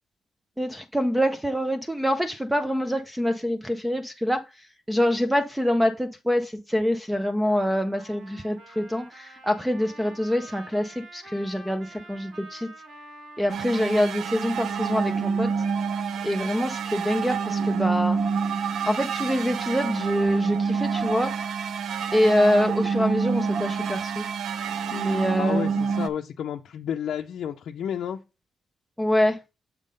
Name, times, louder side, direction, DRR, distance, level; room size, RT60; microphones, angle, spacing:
voice 1, 0.6-4.4 4.9-12.7 13.4-15.5 16.2-18.2 18.8-21.3 22.1-24.2 24.9-25.8 29.0-29.4, equal, 5° right, 0.5 m, -25 dB
Trumpet, 7.4-15.8, right 2 dB, 80° right, 2.7 m, -48 dB
sound 1, 13.5-26.1, right 5 dB, 65° right, 0.6 m, -27 dB
voice 2, 25.4-28.2, left 9 dB, 70° left, 0.5 m, -31 dB
7.4 x 3.7 x 5.3 m
cardioid pair, 145°, 0 cm